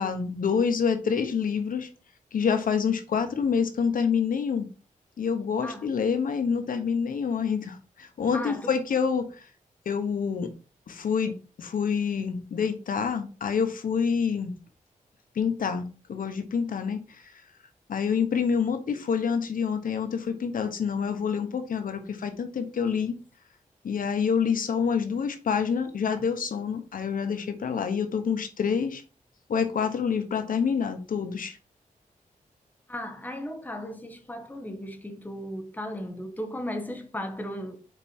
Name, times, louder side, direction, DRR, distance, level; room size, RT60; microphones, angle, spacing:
voice 1, 0.0-1.9 2.3-4.7 5.2-9.5 9.8-10.5 10.9-14.5 15.3-17.4 17.9-23.2 23.8-29.0 29.5-31.6, left 6 dB, 85° left, 1.0 m, -27 dB
voice 2, 8.3-8.7 32.9-37.8, left 1 dB, 10° left, 1.2 m, -36 dB
6.6 x 4.8 x 4.4 m
wide cardioid pair, 120°, 14 cm